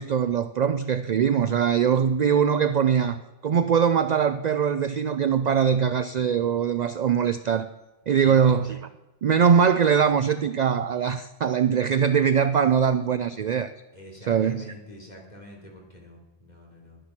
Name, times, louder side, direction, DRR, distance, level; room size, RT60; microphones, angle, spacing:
voice 1, 0.0-7.7 8.1-8.9 9.2-13.7 14.3-14.7, right 7 dB, 55° right, 12 dB, 0.5 m, -22 dB
voice 2, 8.2-8.6 13.9-17.0, equal, 40° left, -1 dB, 3.3 m, -46 dB
12.0 x 10.0 x 5.8 m, 1.1 s
omnidirectional pair, 1.2 m